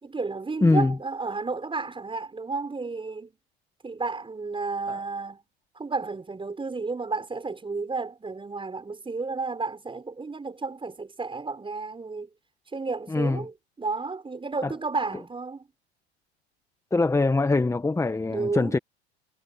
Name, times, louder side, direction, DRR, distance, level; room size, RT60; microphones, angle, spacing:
voice 1, 0.0-3.4 3.8-5.4 5.7-12.3 12.7-15.7 18.3-18.8, right 4 dB, 15° right, 5.9 m, -32 dB
voice 2, 0.6-0.9 4.9-5.0 13.1-13.4 16.9-18.8, left 3 dB, 10° left, 1.3 m, -23 dB
hypercardioid pair, 85°, 33 cm